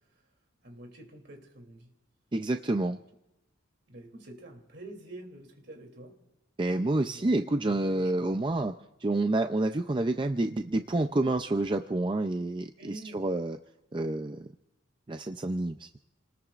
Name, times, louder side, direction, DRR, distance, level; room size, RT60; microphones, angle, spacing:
voice 1, 0.6-1.9 3.9-6.1 7.0-8.3 12.8-13.3, right 1 dB, 60° right, 3 dB, 3.0 m, -47 dB
voice 2, 2.3-3.0 6.6-13.6 13.9-14.5 15.1-15.9, right 2 dB, 25° right, 7 dB, 0.5 m, -28 dB
29.0 x 19.5 x 2.5 m, 0.93 s
head